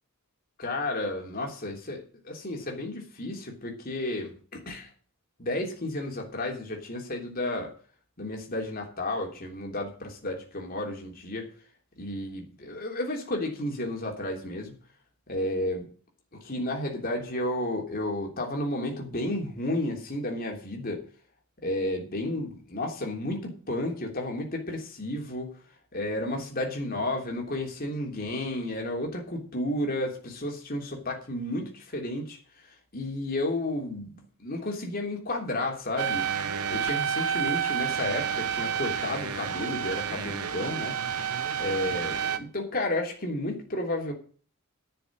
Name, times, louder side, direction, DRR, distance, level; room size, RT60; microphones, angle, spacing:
voice 1, 0.6-4.9 5.4-7.7 8.2-11.5 12.0-14.7 15.3-15.9 16.3-21.0 21.6-25.6 25.9-32.4 32.9-36.3 36.7-41.2 41.6-44.1, left 1 dB, 40° left, 1 dB, 3.3 m, -32 dB
sound 1, 36.0-42.4, right 8 dB, 85° right, 1.1 m, -30 dB
11.0 x 7.0 x 7.5 m, 0.42 s
head